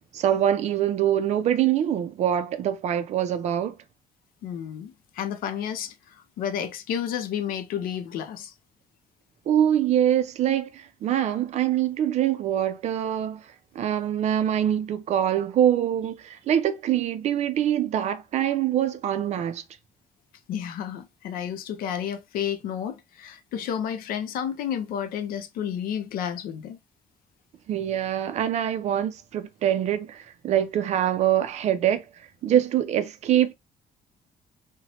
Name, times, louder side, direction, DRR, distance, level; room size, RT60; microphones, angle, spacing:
voice 1, 0.1-3.8 9.5-13.4 13.7-19.6 27.7-32.0 32.4-33.5, right 10 dB, 50° right, 0.4 m, -24 dB
voice 2, 4.4-8.5 20.5-26.8, left 9 dB, 85° left, 0.5 m, -31 dB
2.8 x 2.1 x 2.8 m
cardioid pair, 170°, 15 cm